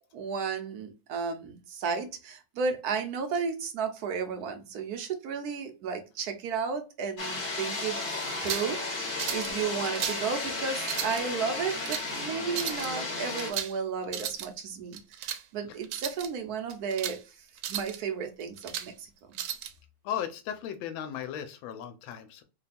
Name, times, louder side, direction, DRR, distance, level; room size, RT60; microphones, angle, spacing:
voice 1, 0.1-8.0 8.4-17.2 17.7-19.1, right 5 dB, 65° right, 6 dB, 1.0 m, -33 dB
sound 1, 7.2-13.5, left 3 dB, 45° left, 1.5 m, -34 dB
sound 2, 8.3-8.7 9.2-9.5 9.8-10.3 10.8-11.2 11.7-12.1 12.5-12.9 13.4-13.8 14.0-14.5 14.9-15.4 15.8-16.3 16.7-17.2 17.6-18.0 18.4-18.9 19.4-19.7, right 11 dB, 90° right, 1.4 m, -35 dB
voice 2, 20.0-22.4, left 9 dB, 85° left, 7 dB, 1.4 m, -36 dB
3.3 x 2.2 x 4.1 m, 0.30 s
omnidirectional pair, 2.1 m